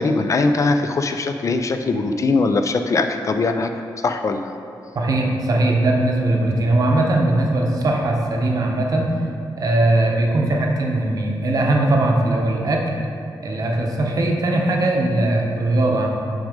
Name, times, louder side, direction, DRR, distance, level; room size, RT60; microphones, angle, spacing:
voice 1, 0.0-3.7 4.0-4.5, left 3 dB, 40° left, 7 dB, 0.3 m, -20 dB
voice 2, 4.9-9.1 9.6-12.9 13.4-16.1, right 2 dB, 50° right, 0 dB, 0.8 m, -19 dB
6.2 x 5.1 x 5.1 m, 2.5 s
wide cardioid pair, 165°, 8 cm